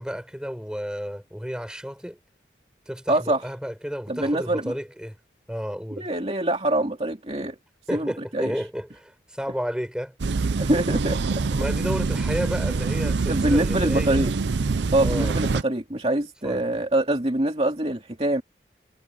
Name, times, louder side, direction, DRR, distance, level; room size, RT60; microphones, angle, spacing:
voice 1, 0.0-2.2 2.9-5.2 5.5-6.1 7.9-10.1 11.5-14.2 15.0-15.4 16.4-16.6, equal, 5° right, 4.9 m, -32 dB
voice 2, 3.1-3.4 4.1-4.7 6.0-7.6 7.9-8.5 10.6-11.2 13.3-14.3 14.9-18.4, right 1 dB, 35° right, 2.6 m, -24 dB
sound 1, 10.2-15.6, right 4 dB, 85° right, 0.6 m, -25 dB
head